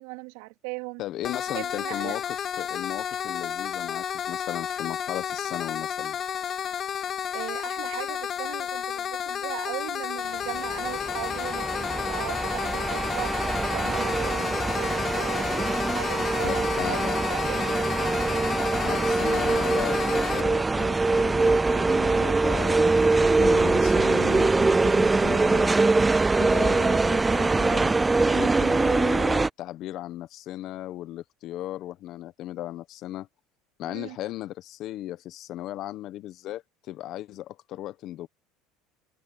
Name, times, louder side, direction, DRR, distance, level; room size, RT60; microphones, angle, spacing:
voice 1, 0.0-1.0 1.5-2.2 7.3-18.1 33.8-34.2, right 26 dB, 80° right, 2.9 m, -38 dB
voice 2, 1.0-2.2 2.6-6.2 16.4-17.2 18.8-25.7 26.4-33.3 33.8-38.3, left 14 dB, 55° left, 1.3 m, -36 dB
sound 1, 1.2-20.4, left 8 dB, 40° left, 2.2 m, -31 dB
sound 2, 10.6-29.5, right 3 dB, 15° right, 0.4 m, -23 dB
supercardioid pair, 110°, 0 cm